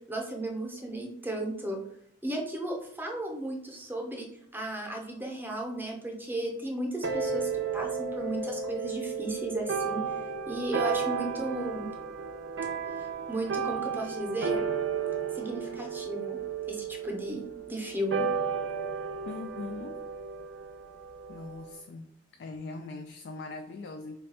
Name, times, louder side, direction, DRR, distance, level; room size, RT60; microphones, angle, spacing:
voice 1, 0.1-1.8 2.2-4.3 4.5-10.0 10.5-11.9 13.0-14.6 15.3-16.4 16.7-18.3, right 1 dB, 10° right, 0 dB, 0.6 m, -35 dB
sound 1, 7.0-21.8, right 5 dB, 85° right, 0.4 m, -33 dB
voice 2, 19.2-20.0 21.3-22.1 22.4-24.2, left 3 dB, 65° left, 4 dB, 0.3 m, -41 dB
3.3 x 2.2 x 4.1 m, 0.68 s
head